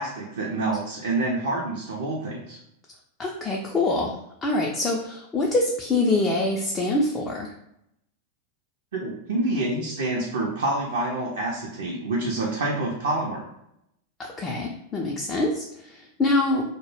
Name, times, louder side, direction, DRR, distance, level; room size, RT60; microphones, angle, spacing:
voice 1, 0.0-2.6 8.9-13.4, right 2 dB, 60° right, -2 dB, 0.4 m, -27 dB
voice 2, 3.2-7.5 14.2-16.7, left 2 dB, 20° left, -1 dB, 0.3 m, -25 dB
2.1 x 2.0 x 3.0 m, 0.79 s
figure-of-eight pair, 90°, 0 cm